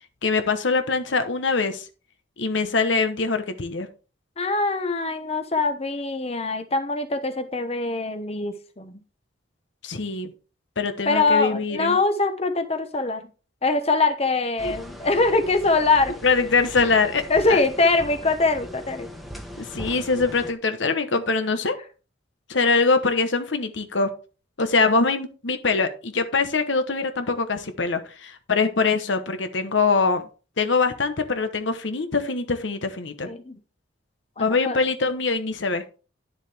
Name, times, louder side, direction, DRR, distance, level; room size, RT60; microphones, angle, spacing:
voice 1, 0.2-1.9 2.4-3.9 9.8-10.3 10.8-12.0 14.6-14.7 16.2-17.6 19.6-21.8 22.5-24.1 24.6-30.3 30.6-33.3 34.4-35.8, left 4 dB, 75° left, 8 dB, 1.1 m, -23 dB
voice 2, 4.4-9.0 11.1-13.3 13.6-16.2 17.3-19.1 33.3-33.6 34.4-34.8, left 3 dB, 35° left, 8 dB, 0.9 m, -23 dB
sound 1, 14.6-20.5, equal, ahead, 1.2 m, -39 dB
10.5 x 7.3 x 3.4 m, 0.35 s
head